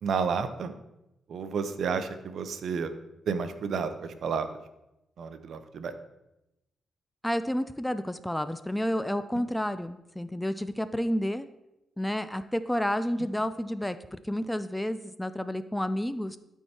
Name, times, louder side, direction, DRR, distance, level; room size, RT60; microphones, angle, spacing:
voice 1, 0.0-0.7 1.3-2.9 3.3-4.6 5.2-5.9 9.3-9.4, right 5 dB, 65° right, 10 dB, 0.7 m, -31 dB
voice 2, 7.2-11.5 12.0-16.4, equal, 5° left, 12 dB, 0.4 m, -30 dB
12.0 x 4.6 x 4.4 m, 0.91 s
cardioid pair, 95°, 0 cm